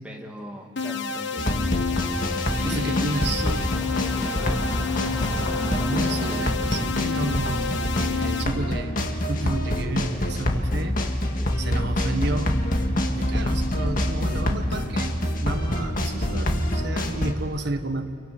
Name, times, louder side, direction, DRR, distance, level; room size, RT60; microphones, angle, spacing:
voice 1, 0.0-1.9 2.6-3.0 4.1-4.9 11.3-11.5, equal, 5° right, 0 dB, 2.4 m, -39 dB
sound 1, 0.8-8.4, left 6 dB, 65° left, 1.3 m, -30 dB
sound 2, 1.4-17.3, left 1 dB, 45° left, 2.0 m, -26 dB
sound 3, 1.6-6.5, equal, 20° left, 6.5 m, -35 dB
voice 2, 2.6-3.7 5.9-11.0 11.6-12.6 13.1-15.1 15.4-18.2, right 2 dB, 60° right, 6 dB, 1.5 m, -31 dB
30.0 x 28.5 x 6.1 m, 2.4 s
head